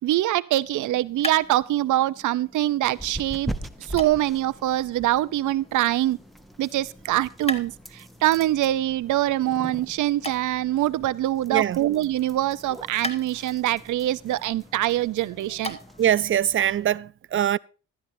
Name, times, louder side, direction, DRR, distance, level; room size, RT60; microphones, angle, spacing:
voice 1, 0.0-3.5 3.9-6.2 6.6-7.7 8.2-15.8, right 14 dB, 75° right, 0.7 m, -24 dB
sound 1, 0.5-16.2, left 1 dB, 20° left, 2.2 m, -41 dB
sound 2, 2.8-17.0, equal, ahead, 1.1 m, -42 dB
voice 2, 11.5-11.8 16.0-17.6, right 10 dB, 45° right, 0.5 m, -22 dB
16.0 x 12.5 x 2.7 m
cardioid pair, 90°, 30 cm